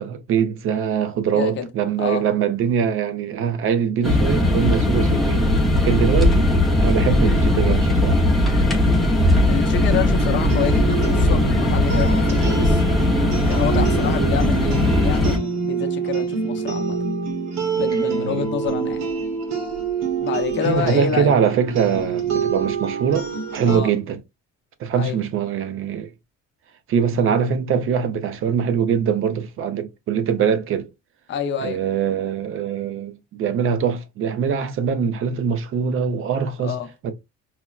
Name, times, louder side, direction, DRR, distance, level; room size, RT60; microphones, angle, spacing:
voice 1, 0.0-5.5 5.8-6.5 6.8-8.2 13.7-13.9 18.3-18.5 20.6-24.2 24.8-26.1 26.9-30.9 31.6-36.8 37.0-37.1, right 7 dB, 45° right, 0.6 m, -22 dB
voice 2, 1.3-1.7 2.0-2.3 9.5-12.8 13.5-17.0 17.8-19.0 20.2-21.3 23.7-23.9 25.0-25.2 31.3-31.8 36.6-36.9, left 7 dB, 40° left, 0.6 m, -27 dB
sound 1, 4.0-15.4, left 1 dB, ahead, 0.5 m, -18 dB
sound 2, 9.9-23.8, right 6 dB, 60° right, 1.0 m, -26 dB
5.6 x 2.0 x 2.3 m
cardioid pair, 175°, 30 cm